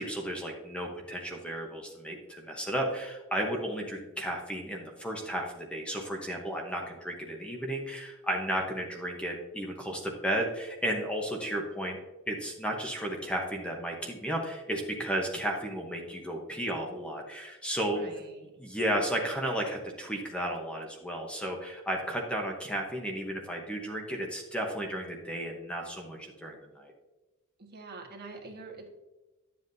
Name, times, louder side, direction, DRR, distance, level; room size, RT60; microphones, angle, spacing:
voice 1, 0.0-12.0 12.3-18.1 18.6-26.9, right 1 dB, 5° left, 1 dB, 0.9 m, -33 dB
voice 2, 17.9-18.5 27.6-28.9, right 3 dB, 50° right, 0 dB, 1.4 m, -45 dB
11.0 x 7.6 x 2.7 m, 1.1 s
head